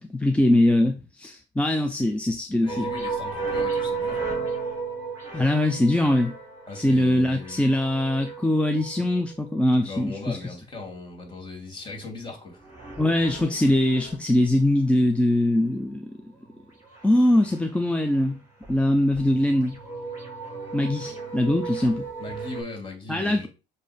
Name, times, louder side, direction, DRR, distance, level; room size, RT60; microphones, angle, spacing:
voice 1, 0.0-2.9 5.3-6.3 6.7-10.4 13.0-16.1 17.0-18.4 18.7-19.8 20.7-22.1 23.1-23.5, left 1 dB, 5° left, 0.6 m, -22 dB
voice 2, 2.6-4.5 6.7-7.6 9.9-12.6 22.2-23.5, left 3 dB, 25° left, 2.8 m, -38 dB
sound 1, 2.7-9.6 12.6-14.2 16.9-17.6 17.9-18.2 18.6-18.7 19.1-22.6, right 4 dB, 15° right, 3.8 m, -34 dB
7.6 x 2.8 x 5.1 m
cardioid pair, 110°, 17 cm